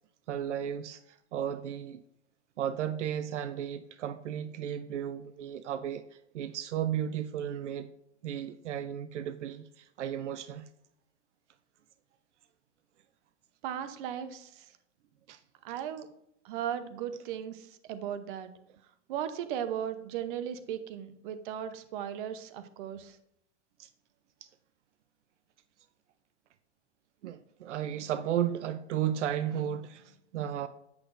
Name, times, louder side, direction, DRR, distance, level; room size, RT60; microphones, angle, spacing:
voice 1, 0.3-1.0 1.3-2.0 2.6-6.0 6.3-7.9 8.2-10.6 15.3-15.4 23.8-23.9 27.2-30.7, right 10 dB, 75° right, 0.6 m, -34 dB
voice 2, 13.6-14.6 15.6-16.1 16.4-18.5 19.1-23.2, right 9 dB, 45° right, 0.8 m, -37 dB
8.5 x 6.5 x 2.6 m
hypercardioid pair, 140°, 35 cm